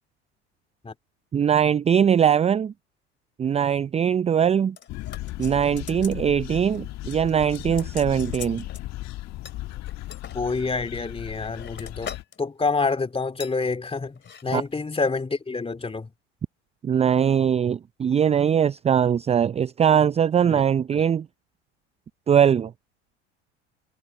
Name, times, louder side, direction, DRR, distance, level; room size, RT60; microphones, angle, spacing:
voice 1, 1.3-2.7 3.4-4.8 5.4-8.6 14.5-14.6 16.8-21.3 22.3-22.7, right 8 dB, 20° right, 0.5 m, -21 dB
sound 1, 4.8-6.2 6.5-6.8 7.1-8.9 9.5-10.4 11.0-12.4 12.7-12.9 13.4-13.6 14.2-14.4 14.7-14.8, left 7 dB, 30° left, 3.0 m, -42 dB
sound 2, 4.9-12.2, left 16 dB, 50° left, 1.6 m, -36 dB
voice 2, 10.3-12.1 12.4-16.1 20.4-20.6 20.9-21.0, left 4 dB, 15° left, 2.8 m, -27 dB
hypercardioid pair, 75°, 35 cm